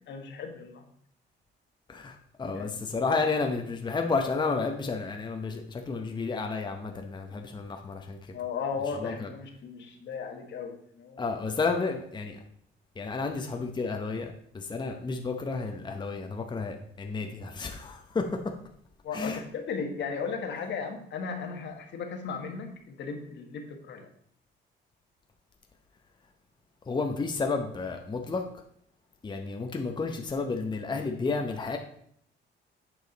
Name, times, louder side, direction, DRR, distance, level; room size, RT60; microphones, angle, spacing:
voice 1, 0.1-0.8 2.5-2.7 8.3-11.3 19.0-24.1, left 5 dB, 65° left, 4 dB, 1.4 m, -36 dB
voice 2, 1.9-8.2 9.0-9.3 11.2-12.4 13.0-18.4 19.1-19.4 26.9-28.4 29.2-31.8, left 4 dB, 20° left, 3 dB, 0.8 m, -31 dB
8.2 x 4.8 x 4.0 m, 0.66 s
cardioid pair, 100°, 20 cm